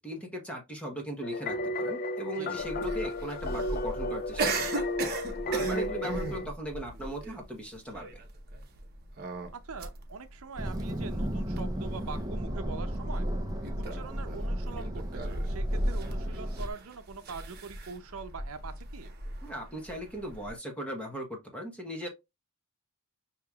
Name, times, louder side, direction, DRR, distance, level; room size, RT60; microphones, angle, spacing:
voice 1, 0.0-4.7 5.3-8.2 19.4-22.1, equal, 5° left, 1.0 m, -38 dB
sound 1, 1.2-6.5, left 1 dB, 40° left, 0.3 m, -33 dB
sound 2, 2.6-20.5, right 2 dB, 45° right, 0.9 m, -38 dB
voice 2, 9.5-13.2 13.7-19.1, right 4 dB, 70° right, 0.6 m, -43 dB
sound 3, 10.6-16.7, equal, 15° right, 0.5 m, -33 dB
6.5 x 2.9 x 2.3 m
head